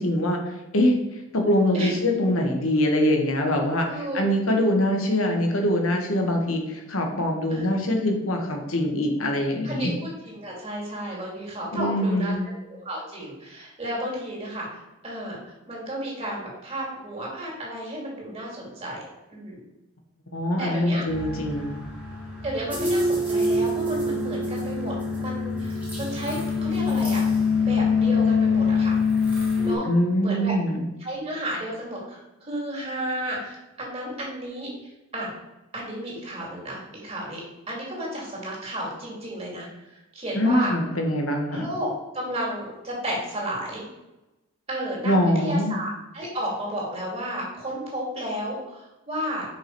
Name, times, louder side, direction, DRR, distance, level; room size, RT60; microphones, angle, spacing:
voice 1, 0.0-9.9 11.7-12.4 20.3-21.8 29.8-30.8 40.4-41.7 45.0-45.7, left 1 dB, 80° left, 3 dB, 1.4 m, -23 dB
voice 2, 3.9-4.2 4.5-4.7 7.5-7.8 9.6-12.3 12.7-14.7 15.0-19.0 19.3-19.6 20.6-21.0 22.4-24.9 25.2-27.3 27.6-29.0 29.6-29.9 30.2-30.5 31.0-34.7 35.1-35.3 35.7-40.7 41.5-41.9 42.1-43.9 44.7-49.5, equal, 30° right, -3 dB, 2.3 m, -32 dB
sound 1, 21.1-29.7, left 4 dB, 5° right, 1.6 m, -24 dB
5.6 x 5.0 x 4.5 m, 1.0 s
head